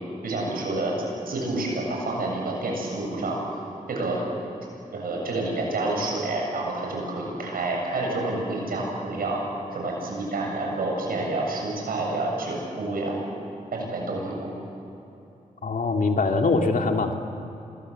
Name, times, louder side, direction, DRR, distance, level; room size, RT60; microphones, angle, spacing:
voice 1, 0.2-0.9 1.3-3.4 3.9-4.2 4.9-9.4 9.7-13.1 13.7-14.5, right 2 dB, 85° right, -1 dB, 7.4 m, -28 dB
voice 2, 15.6-17.1, left 3 dB, 65° left, 3 dB, 2.4 m, -23 dB
27.0 x 22.5 x 7.7 m, 2.9 s
cardioid pair, 50°, 15 cm